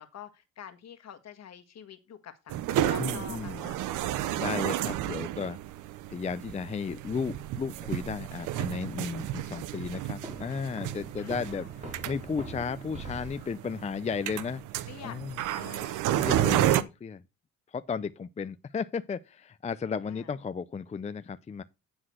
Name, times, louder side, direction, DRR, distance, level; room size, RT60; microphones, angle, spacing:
voice 1, 0.0-3.8 4.4-4.7 11.2-11.7 14.8-15.2 15.5-16.6 20.0-20.3, left 9 dB, 60° left, 1.6 m, -47 dB
sound 1, 2.5-16.8, right 12 dB, 90° right, 0.7 m, -32 dB
voice 2, 3.0-3.7 4.4-5.6 6.1-14.6 15.0-15.4 16.1-17.2 17.7-21.6, left 5 dB, 25° left, 0.5 m, -34 dB
sound 2, 10.2-13.9, right 3 dB, 25° right, 3.1 m, -43 dB
9.6 x 4.0 x 6.3 m
cardioid pair, 90°, 30 cm